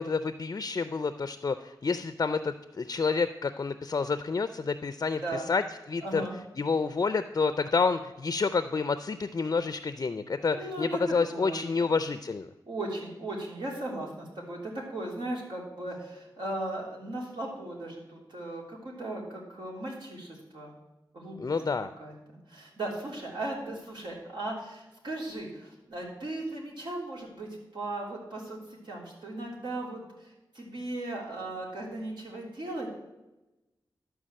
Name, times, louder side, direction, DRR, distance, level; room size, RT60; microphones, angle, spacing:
voice 1, 0.0-5.2 5.5-5.6 5.9-6.2 6.6-12.5 21.4-21.9, left 4 dB, 45° left, 11 dB, 0.4 m, -29 dB
voice 2, 6.0-6.3 10.5-11.9 12.7-20.7 21.1-21.6 22.0-32.9, right 2 dB, 75° right, -3 dB, 3.3 m, -37 dB
12.5 x 4.8 x 7.5 m, 1.0 s
wide cardioid pair, 75°, 8 cm